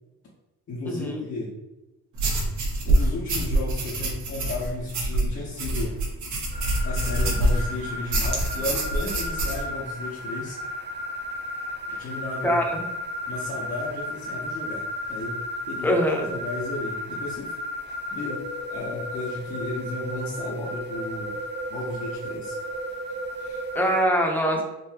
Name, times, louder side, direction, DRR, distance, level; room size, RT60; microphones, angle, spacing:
voice 1, 0.7-1.5 2.8-6.0 6.8-10.6 11.9-12.7 13.3-15.4 15.7-15.9 16.3-17.5 17.9-21.4 21.7-22.6 23.4-23.7, left 2 dB, 45° left, -5 dB, 0.8 m, -34 dB
sound 1, 2.2-7.7 8.1-9.6, right 1 dB, 65° right, 1.1 m, -25 dB
sound 2, 6.5-24.0, equal, 35° right, 0.6 m, -34 dB
voice 2, 12.4-12.8 15.8-16.3 23.7-24.6, equal, 5° left, 0 dB, 0.7 m, -23 dB
3.8 x 2.5 x 2.8 m, 1.0 s
cardioid pair, 90°, 30 cm